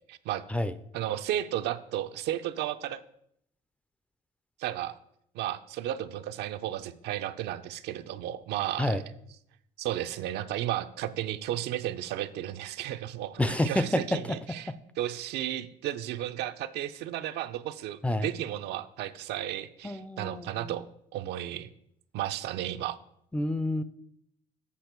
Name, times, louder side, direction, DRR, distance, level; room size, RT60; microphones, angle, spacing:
voice 1, 0.1-0.4 0.9-3.0 4.6-5.0 5.3-9.0 9.8-20.9 21.1-21.7 22.1-23.0, right 12 dB, 80° right, 10 dB, 0.5 m, -33 dB
voice 2, 13.4-14.4 18.0-18.3 19.8-20.7 23.3-23.8, left 1 dB, 5° left, 13 dB, 0.4 m, -28 dB
8.4 x 5.1 x 4.4 m, 0.72 s
cardioid pair, 110°, 17 cm